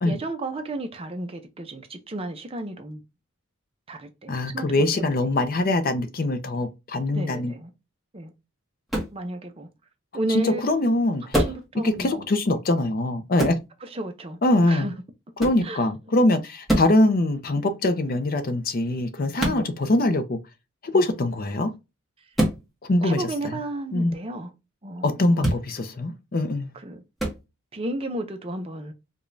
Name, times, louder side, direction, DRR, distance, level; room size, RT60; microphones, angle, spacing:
voice 1, 0.0-3.0 3.9-5.2 7.1-7.7 8.1-8.3 9.1-9.7 10.1-10.6 11.4-12.3 13.8-14.4 14.7-14.9 15.6-15.9 19.4-19.7 20.9-21.1 23.0-24.5 24.8-25.4 26.7-27.0 27.7-28.9, right 1 dB, 25° right, 0.5 m, -33 dB
voice 2, 4.3-7.5 10.3-11.5 11.7-13.6 14.4-14.9 15.4-20.4 20.9-21.7 22.8-23.2 23.9-24.1 25.0-26.7, left 2 dB, 40° left, 0.5 m, -23 dB
sound 1, 8.9-9.2 11.3-11.7 13.4-13.6 15.4-15.6 16.7-17.0 19.4-19.6 22.3-22.6 25.4-25.6 27.2-27.4, right 1 dB, ahead, 1.1 m, -24 dB
4.8 x 2.3 x 2.6 m
head